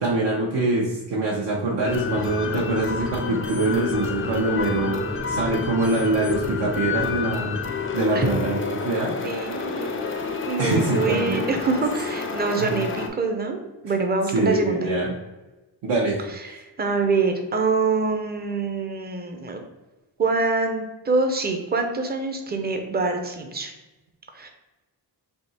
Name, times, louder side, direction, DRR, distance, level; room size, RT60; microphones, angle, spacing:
voice 1, 0.0-7.6 7.9-9.1 10.6-11.5 12.6-12.7 14.3-15.1 15.8-16.2, right 2 dB, 75° right, -4 dB, 0.9 m, -24 dB
sound 1, 1.8-13.1, left 5 dB, 30° left, 0.4 m, -29 dB
voice 2, 9.2-9.9 10.5-14.9 16.4-19.6 20.2-23.7 24.3-24.5, right 3 dB, 25° right, 4 dB, 0.5 m, -25 dB
3.5 x 2.8 x 4.1 m, 1.1 s
wide cardioid pair, 155°, 42 cm